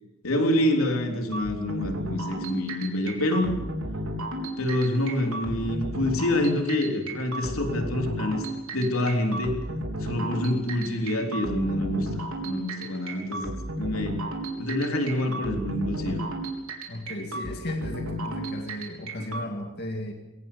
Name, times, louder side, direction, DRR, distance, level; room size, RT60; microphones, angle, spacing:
voice 1, 0.2-3.5 4.6-8.4 8.7-9.6 10.0-14.2 14.6-16.3, left 1 dB, 90° left, 3 dB, 3.6 m, -27 dB
sound 1, 1.3-19.4, right 1 dB, 80° right, 3.9 m, -33 dB
voice 2, 16.9-20.1, left 1 dB, 50° left, 3 dB, 2.1 m, -35 dB
23.0 x 18.0 x 7.0 m, 0.99 s
head